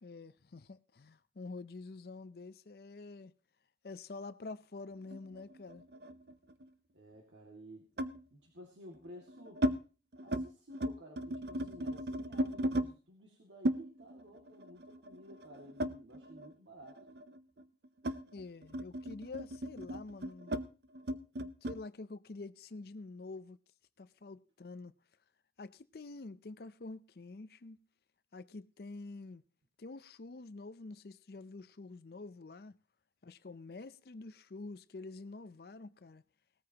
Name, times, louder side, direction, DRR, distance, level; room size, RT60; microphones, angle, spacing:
voice 1, 0.0-3.3 3.8-5.8 18.3-20.5 21.6-23.6 24.0-24.9 25.6-27.8 28.3-29.4 29.8-32.8 33.2-36.2, left 3 dB, 55° left, 0.5 m, -47 dB
sound 1, 5.1-6.7 8.0-8.2 9.0-9.8 10.1-10.5 10.7-12.9 13.6-16.5 16.8-21.8, right 1 dB, 60° right, 0.6 m, -37 dB
voice 2, 6.9-7.9 8.3-9.7 10.2-17.0, equal, 90° right, 2.2 m, -54 dB
18.5 x 13.5 x 2.9 m
head